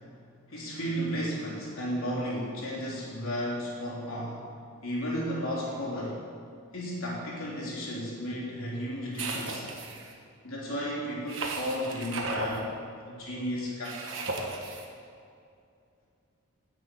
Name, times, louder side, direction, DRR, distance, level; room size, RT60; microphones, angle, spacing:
voice 1, 0.5-4.4 4.8-6.2 6.7-9.7 10.4-12.7 13.1-14.1, equal, 80° left, -4 dB, 3.3 m, -33 dB
sound 1, 9.1-10.1 11.3-12.6 13.8-14.8, right 3 dB, 65° right, 1.4 m, -35 dB
10.5 x 6.2 x 8.4 m, 2.5 s
head